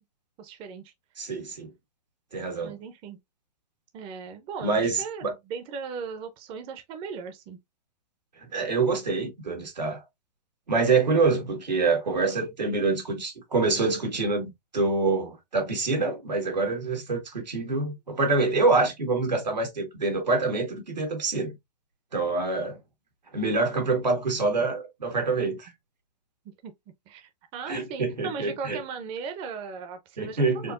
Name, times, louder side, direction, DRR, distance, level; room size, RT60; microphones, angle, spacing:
voice 1, 0.4-0.9 2.6-3.2 3.9-7.6 25.4-25.5 26.6-26.7 27.1-30.7, right 6 dB, 25° right, 0.6 m, -38 dB
voice 2, 1.2-1.7 2.3-2.7 4.6-5.3 8.5-10.0 10.7-14.4 14.7-21.5 22.1-22.8 23.3-25.7 27.7-28.8 30.2-30.7, right 3 dB, 90° right, 1.7 m, -26 dB
4.4 x 2.5 x 2.5 m
hypercardioid pair, 130°, 21 cm